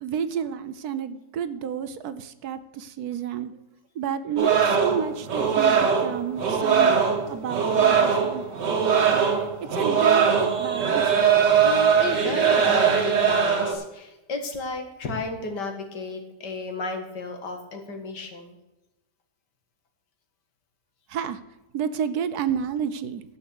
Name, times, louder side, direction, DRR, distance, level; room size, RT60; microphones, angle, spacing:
voice 1, 0.0-3.5 4.0-8.4 9.1-9.3 9.7-11.1 21.1-21.4 21.7-23.2, right 8 dB, 70° right, 12 dB, 1.2 m, -30 dB
sound 1, 4.4-13.7, right 7 dB, 90° right, 2.2 m, -21 dB
voice 2, 11.6-18.6, left 3 dB, 80° left, 5 dB, 2.3 m, -33 dB
11.5 x 7.1 x 6.6 m, 0.98 s
omnidirectional pair, 1.8 m